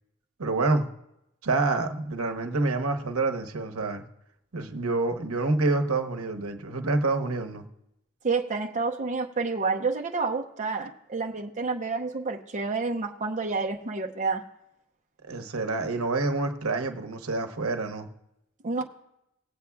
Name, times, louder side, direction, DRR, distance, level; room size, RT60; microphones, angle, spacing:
voice 1, 0.4-0.9 1.4-4.0 4.5-7.7 15.3-18.1, right 3 dB, 85° right, 5 dB, 1.0 m, -27 dB
voice 2, 8.2-14.4 18.6-18.8, right 4 dB, 35° right, 1 dB, 0.8 m, -29 dB
18.5 x 8.2 x 2.3 m, 0.85 s
head